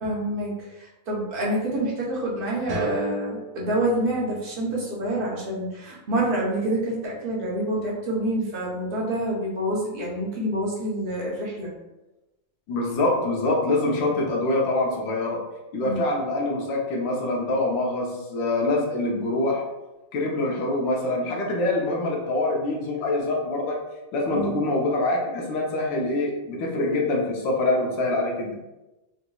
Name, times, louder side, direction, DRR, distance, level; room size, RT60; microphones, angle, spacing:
voice 1, 0.0-11.7 15.8-16.0 24.3-24.6, right 1 dB, 50° right, -5 dB, 0.6 m, -27 dB
sound 1, 2.7-5.5, right 5 dB, 75° right, 1.3 m, -37 dB
voice 2, 12.7-15.4 15.7-19.6 20.1-23.8 24.1-28.5, left 2 dB, 85° left, -1 dB, 1.4 m, -25 dB
3.9 x 2.8 x 2.3 m, 1.0 s
omnidirectional pair, 2.0 m